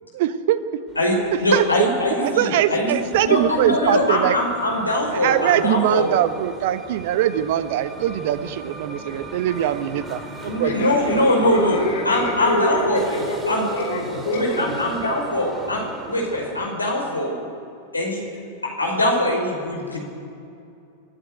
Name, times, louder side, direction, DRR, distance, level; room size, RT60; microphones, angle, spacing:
voice 1, 0.1-0.8 1.3-1.6 2.2-4.4 5.1-11.1, right 12 dB, 50° right, 13 dB, 1.0 m, -22 dB
sound 1, 0.9-16.7, right 2 dB, 15° right, 2.6 m, -37 dB
voice 2, 1.0-2.9 3.2-6.1 10.5-11.8 12.1-13.0 13.5-13.6 14.3-15.8 16.1-17.4 17.9-18.2 18.8-20.0, left 1 dB, 80° left, 0 dB, 5.2 m, -22 dB
voice 3, 10.6-15.3, left 1 dB, 65° left, 1 dB, 5.0 m, -27 dB
23.5 x 12.0 x 9.3 m, 2.5 s
figure-of-eight pair, 90°, 0 cm